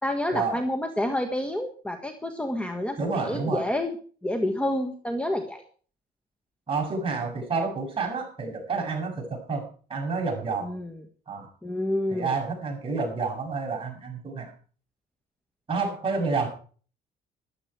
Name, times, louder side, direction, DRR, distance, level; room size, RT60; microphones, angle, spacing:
voice 1, 0.0-3.9 4.2-5.6 10.6-11.0 11.6-12.4, left 1 dB, 5° left, 5 dB, 1.5 m, -29 dB
voice 2, 3.0-3.7 6.7-10.7 11.3-11.5 12.1-14.5 15.7-16.5, right 4 dB, 30° right, 0 dB, 7.2 m, -29 dB
14.0 x 12.0 x 4.7 m, 0.42 s
cardioid pair, 110°, 17 cm